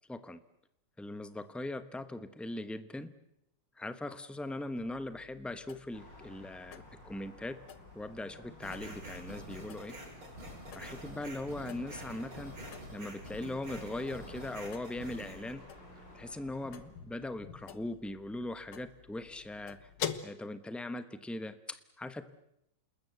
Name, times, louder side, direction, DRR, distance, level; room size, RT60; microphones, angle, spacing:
voice 1, 0.1-0.4 1.0-3.1 3.8-7.6 7.9-10.0 10.7-12.5 12.9-15.6 16.1-19.9 20.2-22.3, left 1 dB, ahead, 11 dB, 0.5 m, -40 dB
sound 1, 4.8-20.2, left 9 dB, 85° left, 2.1 m, -48 dB
sound 2, 5.9-16.9, left 1 dB, 60° left, 7.9 m, -54 dB
sound 3, 8.6-15.5, right 1 dB, 85° right, 6.5 m, -47 dB
28.5 x 20.5 x 8.0 m, 0.82 s
omnidirectional pair, 2.2 m